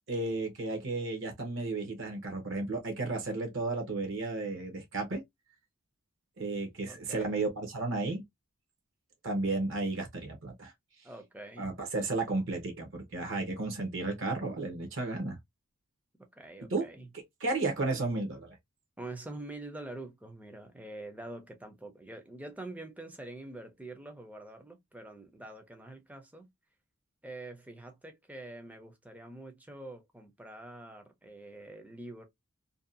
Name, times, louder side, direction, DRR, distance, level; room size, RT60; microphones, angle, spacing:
voice 1, 0.1-5.2 6.4-8.2 9.2-10.7 11.6-15.4 16.7-16.9 17.4-18.6, right 3 dB, 55° right, 0.7 m, -33 dB
voice 2, 6.9-7.4 11.0-11.7 16.3-17.1 19.0-26.5 27.2-32.3, right 2 dB, 5° right, 0.4 m, -45 dB
2.6 x 2.2 x 2.4 m
head